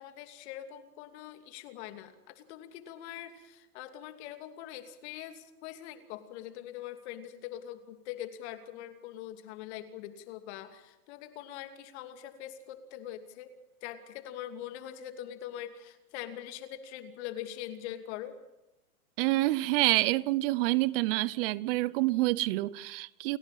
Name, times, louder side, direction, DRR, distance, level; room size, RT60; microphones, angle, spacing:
voice 1, 0.0-13.5 13.8-18.4, left 11 dB, 45° left, 2.8 m, -43 dB
voice 2, 19.2-23.4, right 19 dB, 40° right, 0.8 m, -27 dB
29.5 x 11.5 x 9.0 m
hypercardioid pair, 130°, 45 cm